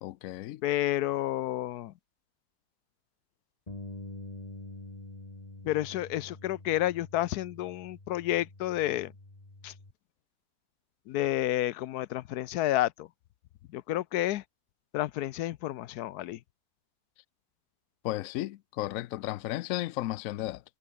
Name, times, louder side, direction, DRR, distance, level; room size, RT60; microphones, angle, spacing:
voice 1, 0.0-0.6 18.0-20.6, left 16 dB, 85° left, 0.7 m, -34 dB
voice 2, 0.6-1.9 5.6-9.1 9.6-9.7 11.1-13.1 13.7-14.4 14.9-16.4, left 14 dB, 70° left, 1.0 m, -30 dB
Bass guitar, 3.7-9.9, left 2 dB, 20° left, 2.8 m, -46 dB
omnidirectional pair, 2.0 m